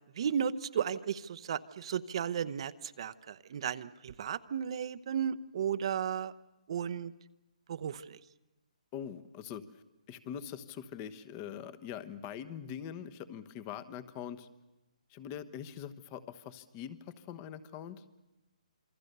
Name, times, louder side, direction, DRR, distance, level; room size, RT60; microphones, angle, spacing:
voice 1, 0.1-6.3 6.7-7.1 7.7-8.2, right 8 dB, 45° right, 12 dB, 0.9 m, -34 dB
voice 2, 8.9-14.5 15.1-18.0, left 9 dB, 20° left, 14 dB, 1.1 m, -43 dB
27.5 x 24.5 x 6.8 m, 1.0 s
hypercardioid pair, 165°, 4 cm